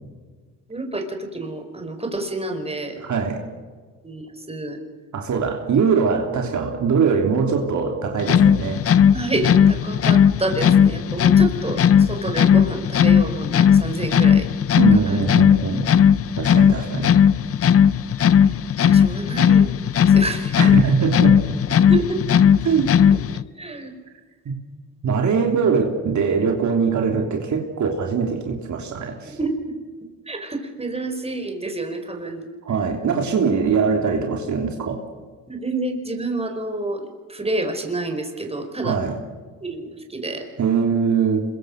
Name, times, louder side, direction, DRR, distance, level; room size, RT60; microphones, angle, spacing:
voice 1, 0.7-3.0 4.0-4.8 9.1-14.5 14.9-15.2 18.4-18.5 18.8-19.7 20.0-20.6 21.8-22.4 23.6-23.9 29.3-29.5 30.3-32.5 35.5-39.0 39.6-40.4, right 2 dB, 20° right, 5 dB, 4.9 m, -28 dB
voice 2, 3.0-3.4 5.1-8.8 14.8-15.8 16.4-17.2 20.6-21.4 22.6-23.0 24.4-24.5 25.0-29.4 32.6-35.0 38.8-39.2 40.6-41.4, right 5 dB, 60° right, 2 dB, 3.1 m, -22 dB
sound 1, 8.2-23.4, left 8 dB, 45° left, 0.8 m, -16 dB
26.0 x 22.5 x 6.5 m, 1.5 s
cardioid pair, 80°, 34 cm